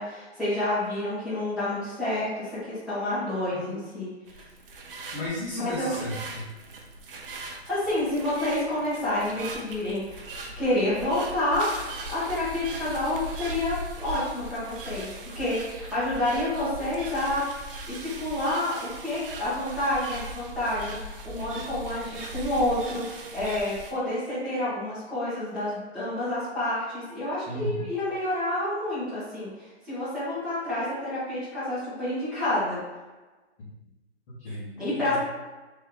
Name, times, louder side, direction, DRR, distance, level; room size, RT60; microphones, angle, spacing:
voice 1, 0.0-4.1 5.6-6.0 7.2-10.2 10.6-11.8 12.1-15.1 15.3-17.5 17.9-32.8 34.8-35.2, left 1 dB, ahead, -13 dB, 1.1 m, -29 dB
sound 1, 4.3-23.9, right 1 dB, 55° right, 0.7 m, -40 dB
voice 2, 5.1-6.5 27.5-27.9 34.3-35.2, left 1 dB, 15° left, -12 dB, 0.9 m, -34 dB
3.6 x 3.2 x 3.5 m, 1.2 s
hypercardioid pair, 155°, 34 cm